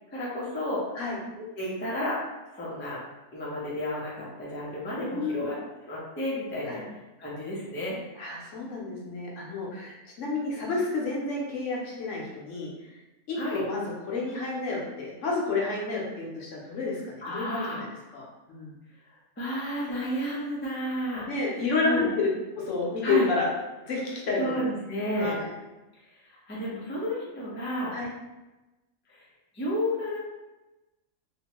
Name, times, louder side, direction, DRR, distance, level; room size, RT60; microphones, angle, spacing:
voice 1, 0.1-0.8 1.3-2.2 2.5-3.0 3.3-5.6 5.9-8.0 10.6-10.7 13.3-13.6 17.2-17.8 19.4-21.3 21.8-22.1 23.0-23.3 24.4-25.4 26.1-28.0 29.1-29.2 29.5-30.2, equal, 15° left, -6 dB, 0.4 m, -32 dB
voice 2, 5.0-5.5 6.6-6.8 8.2-12.7 13.3-17.9 18.1-18.7 21.2-22.3 22.6-23.5 23.8-24.5 25.1-25.5 27.9-28.1, left 3 dB, 70° left, -3 dB, 1.0 m, -30 dB
2.9 x 2.1 x 2.8 m, 1.1 s
omnidirectional pair, 1.4 m